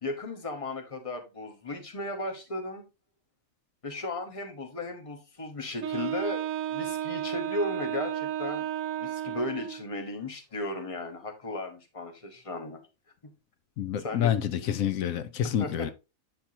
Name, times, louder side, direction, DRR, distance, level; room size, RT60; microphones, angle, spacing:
voice 1, 0.0-2.8 3.8-8.7 9.0-12.8 14.0-14.3 14.6-14.7 15.4-15.9, left 2 dB, 25° left, 1.2 m, -35 dB
Wind instrument woodwind instrument, 5.8-9.9, right 11 dB, 75° right, 1.0 m, -33 dB
voice 2, 13.8-15.9, left 10 dB, 85° left, 1.0 m, -28 dB
8.7 x 5.7 x 2.8 m
omnidirectional pair, 1.4 m